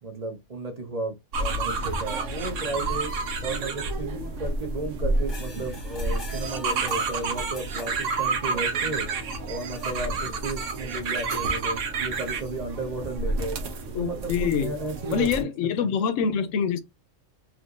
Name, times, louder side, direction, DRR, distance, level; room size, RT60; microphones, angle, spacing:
voice 1, 0.0-3.1 3.4-9.1 9.5-13.6 14.0-15.5 15.8-15.9, right 2 dB, 35° right, 0.8 m, -34 dB
sound 1, 1.3-15.4, right 3 dB, 80° right, 1.1 m, -29 dB
sound 2, 5.2-10.6 11.0-11.2 11.9-13.0 13.2-13.3, left 3 dB, 20° left, 1.0 m, -47 dB
voice 2, 13.9-14.7 15.1-16.8, left 7 dB, 85° left, 1.0 m, -25 dB
3.5 x 3.0 x 2.5 m
omnidirectional pair, 1.3 m